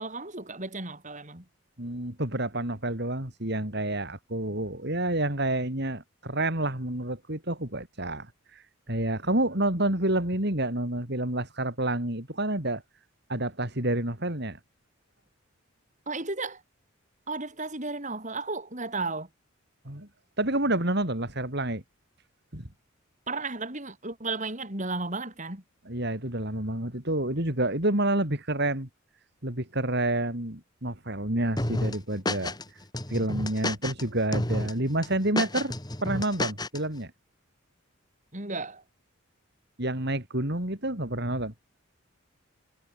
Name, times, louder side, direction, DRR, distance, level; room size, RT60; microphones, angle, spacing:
voice 1, 0.0-1.4 16.1-16.6 17.3-19.3 23.3-25.6 38.3-38.8, right 3 dB, 35° right, 4.9 m, -34 dB
voice 2, 1.8-12.8 13.3-14.6 19.8-20.1 20.4-21.8 22.5-22.6 25.9-28.9 29.4-32.5 33.1-35.7 36.0-37.1 39.8-41.5, right 1 dB, 50° right, 4.7 m, -29 dB
sound 1, 31.6-32.6 32.9-34.0 34.3-34.7 35.0-36.8, left 1 dB, 20° left, 2.8 m, -30 dB
head